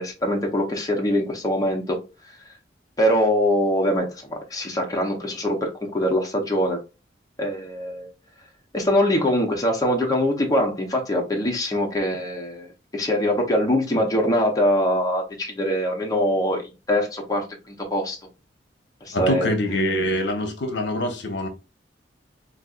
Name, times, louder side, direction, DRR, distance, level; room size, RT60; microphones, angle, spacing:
voice 1, 0.0-2.0 3.0-6.8 7.4-8.1 8.7-18.2 19.0-19.5, equal, 20° left, 0.7 m, -23 dB
voice 2, 19.1-21.5, left 1 dB, 70° left, 0.7 m, -24 dB
4.0 x 2.4 x 2.3 m
head